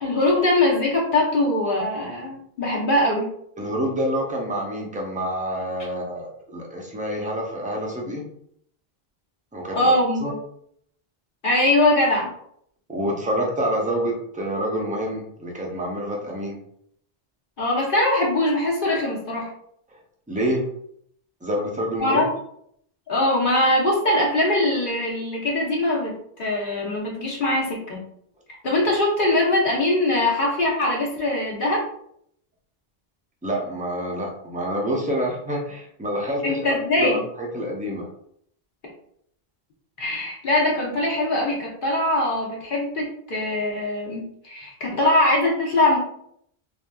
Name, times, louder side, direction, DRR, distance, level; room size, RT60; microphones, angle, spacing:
voice 1, 0.0-3.3 9.7-10.3 11.4-12.3 17.6-19.5 22.0-22.3 23.1-26.1 26.4-28.0 28.6-31.8 36.4-37.2 40.0-46.0, left 1 dB, 55° left, -3 dB, 0.9 m, -22 dB
voice 2, 3.6-8.2 9.5-9.9 10.2-10.3 12.9-16.6 20.3-20.7 21.4-22.2 33.4-36.7 37.0-38.1, equal, 10° right, -2 dB, 0.4 m, -27 dB
3.2 x 2.5 x 2.2 m, 0.68 s
omnidirectional pair, 1.1 m